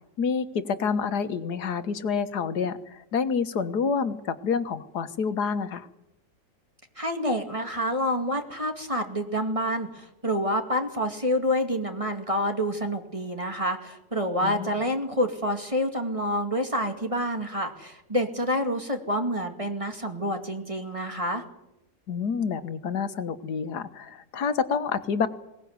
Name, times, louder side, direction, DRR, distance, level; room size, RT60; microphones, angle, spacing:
voice 1, 0.2-5.9 14.4-14.7 22.1-25.3, left 6 dB, 80° left, 11 dB, 1.8 m, -28 dB
voice 2, 7.0-21.4, equal, 20° right, 5 dB, 2.2 m, -28 dB
21.0 x 18.0 x 9.5 m, 0.89 s
omnidirectional pair, 1.7 m